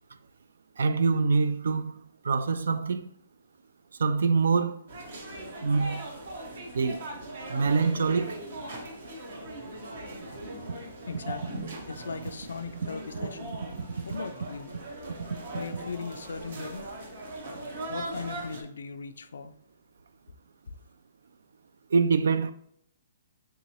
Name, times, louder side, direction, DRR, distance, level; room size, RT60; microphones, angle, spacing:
voice 1, 0.8-3.1 4.0-4.8 5.6-6.0 6.7-7.0 7.5-8.4 21.9-22.5, right 4 dB, 80° right, 0.3 m, -25 dB
sound 1, 4.9-18.6, right 1 dB, 50° right, 0.7 m, -40 dB
voice 2, 11.1-13.5 14.0-14.8 15.5-16.9 17.9-19.5, left 4 dB, 85° left, 0.3 m, -38 dB
3.6 x 2.9 x 2.8 m
hypercardioid pair, 170°, 0 cm